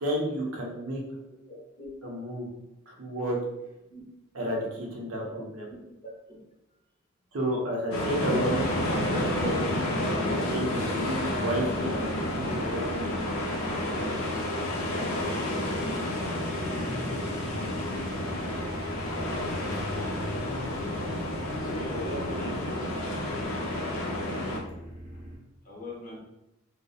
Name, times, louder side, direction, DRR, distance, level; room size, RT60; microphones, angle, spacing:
voice 1, 0.0-1.0 2.0-2.5 2.9-3.4 4.3-5.2 5.5-5.6 7.3-8.6 9.1-9.5 10.3-13.1, right 1 dB, 75° right, -2 dB, 0.6 m, -31 dB
voice 2, 1.5-1.9 3.9-4.0 5.3-5.4 5.7-6.4 6.7-6.8 8.2-8.4 8.8-9.2 17.7-17.9 19.6-20.2 21.6-23.1 25.1-25.2 25.6-26.2, equal, 40° left, -3 dB, 0.7 m, -41 dB
sound 1, 7.9-24.6, left 1 dB, 80° left, 0.4 m, -30 dB
sound 2, 8.4-25.4, right 1 dB, 40° right, 0.8 m, -43 dB
sound 3, 16.2-21.3, left 1 dB, ahead, 0.4 m, -42 dB
2.7 x 2.0 x 2.3 m, 0.92 s
head